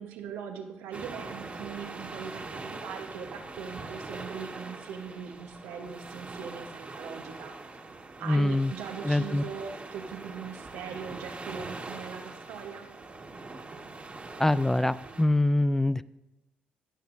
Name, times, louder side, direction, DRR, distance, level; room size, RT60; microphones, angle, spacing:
voice 1, 0.0-7.5 8.2-12.8, right 7 dB, 85° right, 3 dB, 1.1 m, -40 dB
sound 1, 0.9-15.2, right 3 dB, 35° right, 1.6 m, -42 dB
voice 2, 8.2-8.7 9.0-9.4 14.4-16.0, left 1 dB, 10° left, 16 dB, 0.3 m, -24 dB
17.5 x 6.9 x 2.6 m, 0.95 s
supercardioid pair, 60°, 4 cm